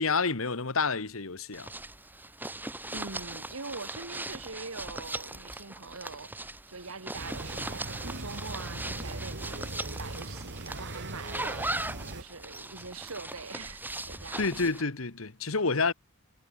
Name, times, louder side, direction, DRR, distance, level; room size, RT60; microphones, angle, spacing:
voice 1, 0.0-1.7 14.4-15.9, left 4 dB, 70° left, 1.6 m, -29 dB
sound 1, 1.5-14.8, right 2 dB, 10° right, 3.2 m, -39 dB
voice 2, 2.9-14.6, right 4 dB, 80° right, 2.7 m, -43 dB
sound 2, 7.1-12.2, right 2 dB, 55° right, 3.0 m, -40 dB
head